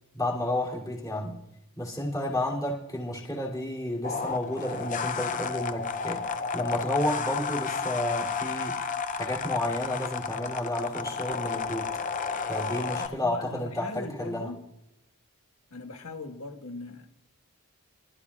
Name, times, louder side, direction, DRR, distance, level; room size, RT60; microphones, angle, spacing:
voice 1, 0.1-1.4 1.8-6.2 6.5-8.8 9.1-11.9 12.5-14.5, left 1 dB, 15° left, -4 dB, 2.9 m, -31 dB
sound 1, 4.0-13.1, left 5 dB, 35° left, 0.5 m, -32 dB
voice 2, 12.9-14.6 15.7-17.1, left 3 dB, 80° left, 4 dB, 1.5 m, -40 dB
25.0 x 12.5 x 2.4 m, 0.90 s
head